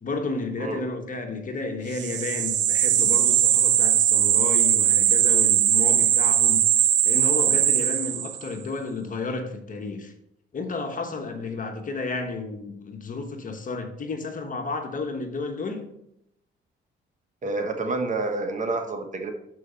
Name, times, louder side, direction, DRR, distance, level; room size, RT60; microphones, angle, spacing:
voice 1, 0.0-6.6 7.0-10.1 10.5-15.9, left 3 dB, 40° left, 1.2 m, -32 dB
sound 1, 1.9-8.5, right 10 dB, 65° right, 0.5 m, -20 dB
voice 2, 17.4-19.3, right 3 dB, 40° right, 1.2 m, -28 dB
6.4 x 4.8 x 5.4 m
cardioid pair, 90°, 20 cm